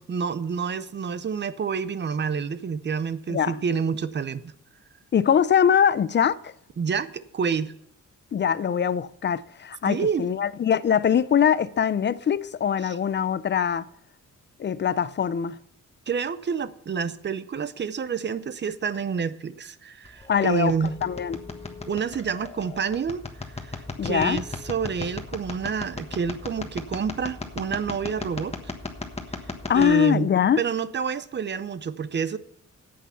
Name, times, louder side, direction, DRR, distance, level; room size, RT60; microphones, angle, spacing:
voice 1, 0.0-4.5 6.8-7.7 9.9-10.3 12.8-13.0 16.1-21.0 21.9-23.2 23.5-28.6 29.7-30.3 30.6-32.4, right 6 dB, 35° right, 0.6 m, -28 dB
voice 2, 5.1-6.5 8.3-13.9 14.6-15.6 20.3-20.7 21.0-21.4 24.0-24.4 29.7-30.6, left 8 dB, 35° left, 0.4 m, -22 dB
sound 1, 20.0-29.9, left 3 dB, 20° left, 1.3 m, -37 dB
9.9 x 8.6 x 5.5 m
wide cardioid pair, 130°, 30 cm